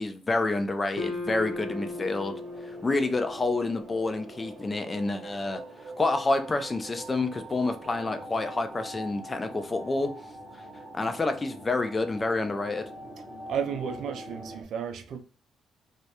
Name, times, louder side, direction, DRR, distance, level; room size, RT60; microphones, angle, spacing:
voice 1, 0.0-2.4 2.7-5.6 6.0-10.1 10.9-12.8, left 2 dB, 25° left, 0.4 m, -28 dB
sound 1, 0.9-5.3, left 3 dB, 90° left, 0.6 m, -38 dB
sound 2, 1.4-14.6, right 1 dB, 40° right, 0.7 m, -44 dB
voice 2, 13.5-15.2, right 7 dB, 70° right, 0.4 m, -33 dB
2.2 x 2.0 x 2.8 m
cardioid pair, 90°, 0 cm